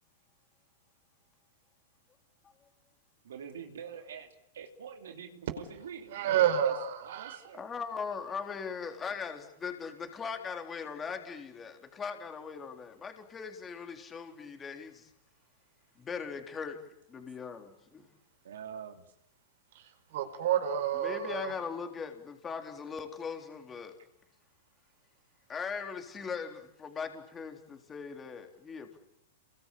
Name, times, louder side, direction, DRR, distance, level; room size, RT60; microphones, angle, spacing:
voice 1, 3.2-6.7 7.0-7.7 18.4-19.0, right 7 dB, 85° right, 3.1 m, -46 dB
voice 2, 6.1-7.4 19.7-19.8 20.1-21.5, right 10 dB, 65° right, 5.0 m, -29 dB
voice 3, 7.5-15.1 16.0-16.8 17.1-18.1 21.0-24.0 25.5-29.0, left 6 dB, 20° left, 3.7 m, -40 dB
28.5 x 23.0 x 8.6 m
hypercardioid pair, 130°, 0 cm